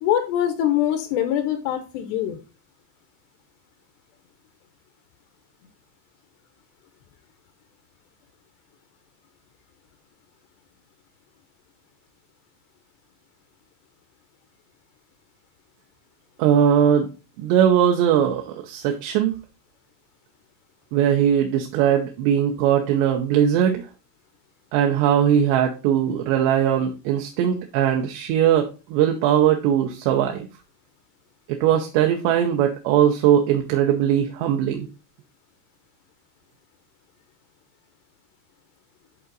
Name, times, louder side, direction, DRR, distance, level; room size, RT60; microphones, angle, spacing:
voice 1, 0.0-2.4, left 11 dB, 80° left, 7 dB, 2.8 m, -23 dB
voice 2, 16.4-17.1 17.4-19.4 20.9-23.8 24.7-30.5 31.5-34.9, right 9 dB, 80° right, 3 dB, 2.9 m, -20 dB
10.5 x 3.9 x 3.9 m, 0.31 s
omnidirectional pair, 5.0 m